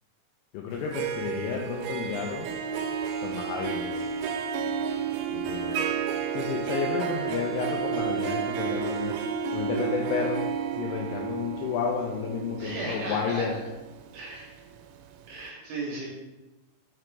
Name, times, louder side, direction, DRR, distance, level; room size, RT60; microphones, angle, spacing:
voice 1, 0.5-2.5 3.2-3.9 5.3-5.8 6.3-9.2 9.5-10.4 10.8-13.5, left 6 dB, 85° left, 0 dB, 2.4 m, -31 dB
Harp, 0.7-14.7, right 7 dB, 90° right, 3.0 m, -31 dB
voice 2, 12.6-13.6 14.1-14.5 15.3-16.1, right 2 dB, 75° right, -3 dB, 2.4 m, -35 dB
6.0 x 5.0 x 3.2 m, 1.1 s
omnidirectional pair, 5.3 m